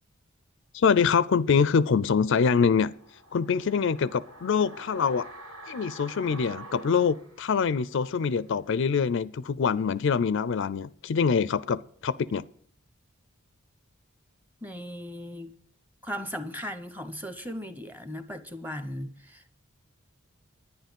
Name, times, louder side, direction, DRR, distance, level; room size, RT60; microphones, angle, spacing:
voice 1, 0.7-2.9 3.3-5.3 5.7-12.4, left 6 dB, 60° left, 0.4 m, -24 dB
sound 1, 2.9-8.1 8.4-8.5, right 2 dB, 90° right, 3.4 m, -46 dB
voice 2, 14.6-15.5 16.0-19.4, equal, 10° right, 0.9 m, -37 dB
11.5 x 9.7 x 5.3 m
head